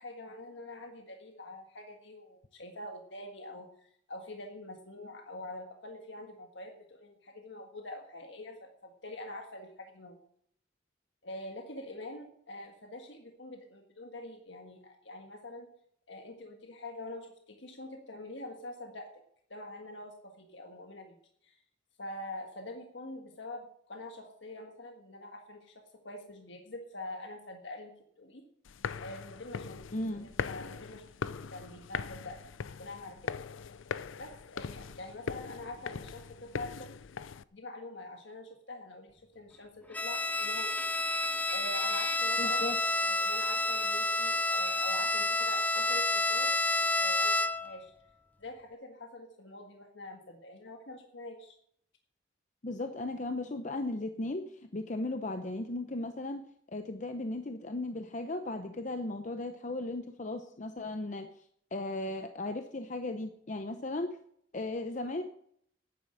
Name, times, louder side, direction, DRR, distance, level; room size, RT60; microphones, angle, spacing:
voice 1, 0.0-10.2 11.2-15.7 16.1-19.1 19.5-21.2 21.4-21.6 22.0-28.4 29.0-29.8 30.1-32.4 32.8-33.4 34.2-36.9 37.5-40.7 41.5-42.6 42.9-47.9 48.4-51.5, left 2 dB, 70° left, 3 dB, 1.6 m, -45 dB
sound 1, 28.7-37.4, left 6 dB, 90° left, 0.5 m, -40 dB
voice 2, 29.9-30.3 42.4-42.8 52.6-61.3 61.7-64.2 64.5-65.2, left 2 dB, 40° left, 7 dB, 0.7 m, -36 dB
Bowed string instrument, 39.9-47.8, left 2 dB, 10° left, 0.5 m, -29 dB
11.0 x 9.8 x 6.5 m, 0.67 s
head